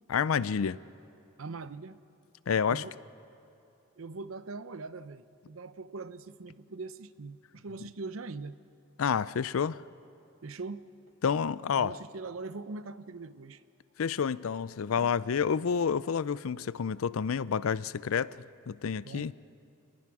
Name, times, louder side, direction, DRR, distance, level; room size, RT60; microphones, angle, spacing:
voice 1, 0.1-0.8 2.5-2.8 9.0-9.8 11.2-11.9 14.0-18.4 18.7-19.3, left 6 dB, 85° left, 18 dB, 0.5 m, -29 dB
voice 2, 1.4-2.0 2.7-2.9 4.0-8.6 10.4-10.9 11.8-13.6 15.0-15.1 19.0-19.3, right 3 dB, 85° right, 14 dB, 0.7 m, -41 dB
29.5 x 19.5 x 4.9 m, 2.9 s
head